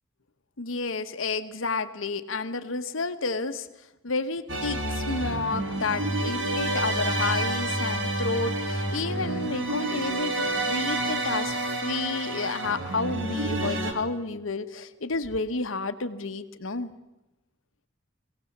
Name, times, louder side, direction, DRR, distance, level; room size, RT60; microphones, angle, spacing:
voice 1, 0.6-3.7 4.0-16.9, left 3 dB, 80° left, 10 dB, 1.1 m, -31 dB
sound 1, 4.5-13.9, right 2 dB, 70° right, 2.4 m, -29 dB
21.5 x 17.0 x 7.3 m, 1.0 s
head